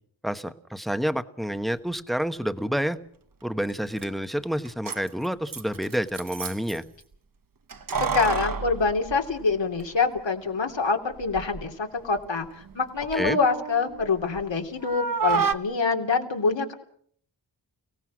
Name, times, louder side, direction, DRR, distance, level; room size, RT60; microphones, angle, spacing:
voice 1, 0.2-3.0 3.4-6.8 13.1-13.4, equal, ahead, 10 dB, 1.1 m, -28 dB
Keys jangling, 3.7-3.8 4.0-4.1 4.7-6.8 7.7-9.9 10.2-10.3 11.1-11.7 12.0-14.5 14.8-15.5, right 5 dB, 45° right, 1.1 m, -30 dB
voice 2, 8.0-16.7, left 4 dB, 70° left, 3 dB, 3.1 m, -26 dB
29.5 x 17.5 x 6.2 m, 0.63 s
wide cardioid pair, 100°, 45 cm